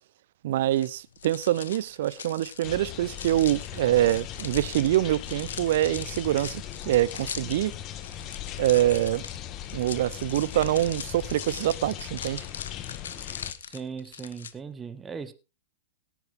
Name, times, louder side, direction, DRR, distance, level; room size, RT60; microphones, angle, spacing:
voice 1, 0.4-7.7 8.6-9.2 9.7-12.4, right 13 dB, 60° right, 0.7 m, -25 dB
sound 1, 0.7-14.5, left 8 dB, 75° left, 1.1 m, -41 dB
sound 2, 2.6-13.5, left 11 dB, 35° left, 1.4 m, -39 dB
voice 2, 13.6-15.3, right 6 dB, 15° right, 1.4 m, -38 dB
17.5 x 9.3 x 3.7 m
hypercardioid pair, 105°, 0 cm